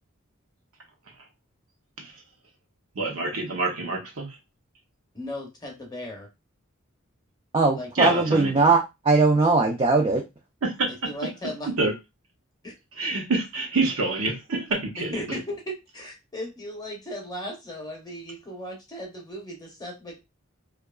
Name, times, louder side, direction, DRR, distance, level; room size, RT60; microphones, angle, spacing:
voice 1, 2.9-4.4 8.0-8.5 10.6-10.9 11.8-11.9 13.0-15.2, right 3 dB, 85° right, 0.8 m, -26 dB
voice 2, 5.1-6.3 7.7-8.2 11.0-11.7 12.6-12.7 15.0-20.2, equal, 20° left, 0.7 m, -36 dB
voice 3, 7.5-10.2, right 3 dB, 25° right, 0.4 m, -20 dB
2.7 x 2.3 x 2.3 m
head